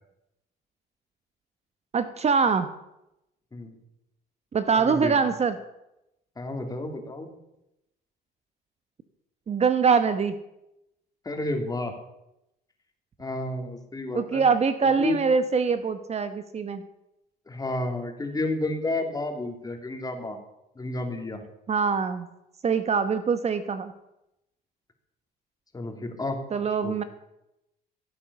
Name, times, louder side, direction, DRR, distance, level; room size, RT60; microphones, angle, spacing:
voice 1, 1.9-2.7 4.5-5.6 9.5-10.4 14.1-16.8 21.7-22.3 22.6-23.9 26.5-27.0, right 5 dB, 35° right, 11 dB, 1.0 m, -23 dB
voice 2, 4.7-5.2 6.4-7.3 11.2-11.9 13.2-14.4 15.0-15.2 17.5-20.4 20.8-21.4 25.7-26.4 26.8-27.0, left 2 dB, 20° left, 4 dB, 2.9 m, -31 dB
16.0 x 8.7 x 6.9 m, 0.87 s
cardioid pair, 90°, 18 cm